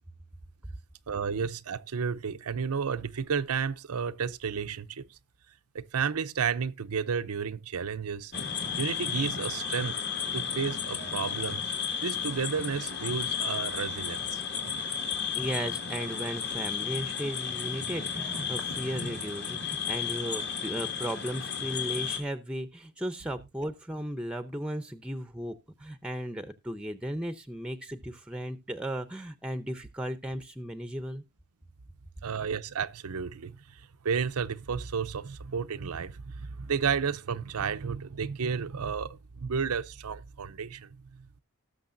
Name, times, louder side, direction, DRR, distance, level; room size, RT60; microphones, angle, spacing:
voice 1, 1.1-5.2 5.7-8.3 8.8-10.0 10.3-11.7 12.0-14.4 32.2-41.4, right 6 dB, 85° right, 0.6 m, -32 dB
sound 1, 8.3-22.2, left 7 dB, 50° left, 2.1 m, -33 dB
voice 2, 14.9-31.2, equal, 5° right, 0.6 m, -36 dB
18.5 x 6.5 x 2.6 m
head